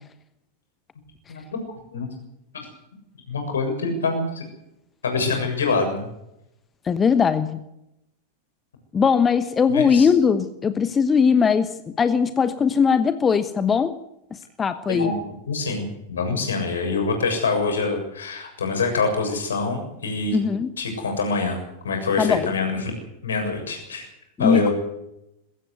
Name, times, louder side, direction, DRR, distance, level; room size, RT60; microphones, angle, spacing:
voice 1, 1.3-1.6 1.9-2.1 3.3-4.4 5.0-6.1 9.7-10.1 14.9-20.4 20.8-21.6 21.8-22.9 23.2-24.1 24.4-24.7, left 4 dB, 70° left, 4 dB, 7.2 m, -25 dB
voice 2, 6.8-7.6 8.9-14.0 14.3-15.2 20.3-20.7 22.2-22.5 24.4-24.7, left 6 dB, 20° left, 12 dB, 1.1 m, -20 dB
22.0 x 15.5 x 8.1 m, 0.85 s
figure-of-eight pair, 90°, 0 cm